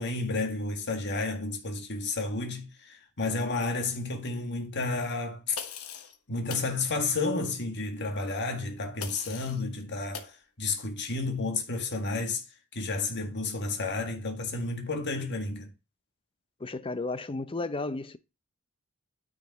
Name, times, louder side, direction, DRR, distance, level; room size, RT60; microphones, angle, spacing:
voice 1, 0.0-5.6 6.3-12.4 12.7-15.7, left 3 dB, 50° left, 1.8 m, -31 dB
sound 1, 5.6-6.2 6.5-6.7 9.0-9.6 10.1-10.3, left 7 dB, 90° left, 1.2 m, -40 dB
voice 2, 16.6-18.2, left 3 dB, 25° left, 0.6 m, -33 dB
9.6 x 5.2 x 4.1 m
head